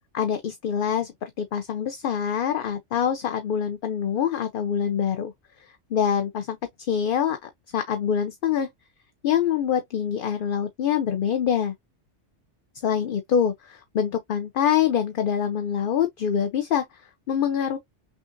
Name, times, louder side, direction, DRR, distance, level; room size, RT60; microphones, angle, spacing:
voice 1, 0.1-5.3 5.6-8.7 9.2-11.7 12.8-17.8, left 8 dB, 55° left, 0.7 m, -25 dB
6.2 x 2.5 x 2.5 m
omnidirectional pair, 1.2 m